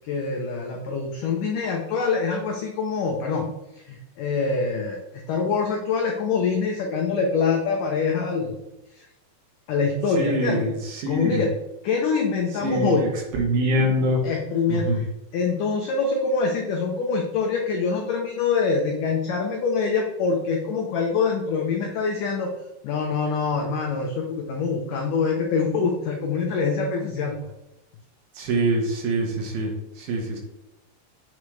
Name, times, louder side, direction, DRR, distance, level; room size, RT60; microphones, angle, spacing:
voice 1, 0.0-3.5 3.7-8.6 8.9-9.1 9.7-10.7 11.1-11.5 11.8-13.1 14.2-15.1 15.3-22.5 22.8-27.4, left 5 dB, 85° left, 1 dB, 1.8 m, -25 dB
voice 2, 10.2-11.4 12.6-14.2 14.7-15.0 28.4-30.4, right 1 dB, 70° right, 1 dB, 2.6 m, -24 dB
7.2 x 6.6 x 3.2 m, 0.94 s
omnidirectional pair, 4.9 m